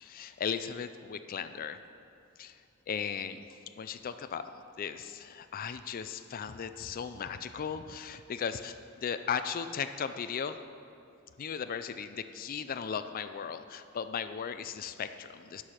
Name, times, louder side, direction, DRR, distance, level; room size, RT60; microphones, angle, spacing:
voice 1, 0.0-1.8 2.4-2.6 2.9-3.4 3.8-4.4 4.8-10.6 11.4-15.6, left 7 dB, 40° left, 10 dB, 0.4 m, -36 dB
13.0 x 4.8 x 5.8 m, 2.6 s
head